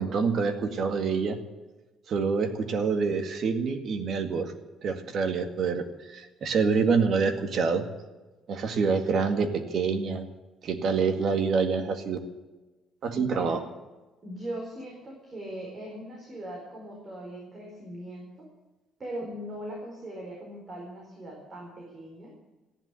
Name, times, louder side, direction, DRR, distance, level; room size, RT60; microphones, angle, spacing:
voice 1, 0.0-1.4 2.1-4.5 4.8-5.9 6.1-7.8 8.5-10.3 10.6-12.2 13.0-13.6, right 5 dB, 50° right, 7 dB, 2.0 m, -26 dB
voice 2, 13.1-13.6 14.2-18.3 19.0-22.3, right 1 dB, 30° right, -1 dB, 4.5 m, -39 dB
14.5 x 11.0 x 8.3 m, 1.2 s
cardioid pair, 135°, 0 cm